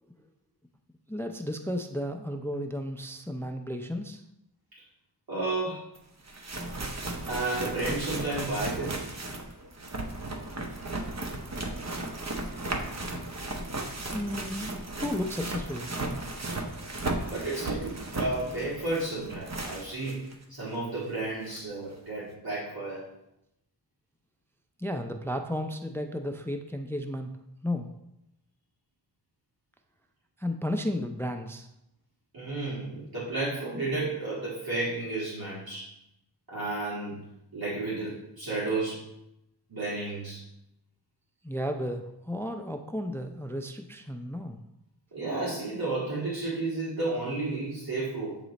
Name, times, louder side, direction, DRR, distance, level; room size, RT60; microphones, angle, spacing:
voice 1, 1.1-4.2 14.1-14.7 15.0-15.9 24.8-27.3 27.6-27.9 30.4-31.7 41.4-44.6, left 1 dB, 5° left, 5 dB, 0.4 m, -33 dB
voice 2, 5.3-5.8 7.3-9.0 17.3-23.0 32.3-35.9 36.5-37.2 37.5-39.1 39.7-40.4 45.1-48.4, right 2 dB, 55° right, -8 dB, 1.7 m, -32 dB
sound 1, 6.0-6.1 6.3-20.3 20.7-20.8 21.6-21.7, right 2 dB, 35° right, 0.8 m, -35 dB
7.8 x 3.0 x 4.0 m, 0.84 s
wide cardioid pair, 65°, 44 cm